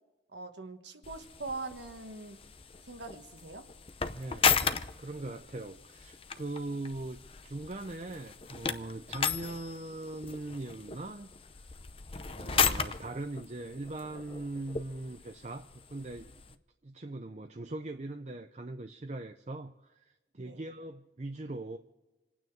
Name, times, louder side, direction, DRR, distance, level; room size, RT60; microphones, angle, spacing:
voice 1, 0.3-2.4 2.8-3.6 20.4-20.6, right 3 dB, 75° right, 6 dB, 1.5 m, -42 dB
sound 1, 1.0-16.5, left 6 dB, 30° left, 0.6 m, -35 dB
voice 2, 4.1-4.6 5.0-11.7 12.3-16.6 16.8-21.8, right 2 dB, 35° right, 7 dB, 0.6 m, -41 dB
28.0 x 9.3 x 4.7 m, 1.1 s
head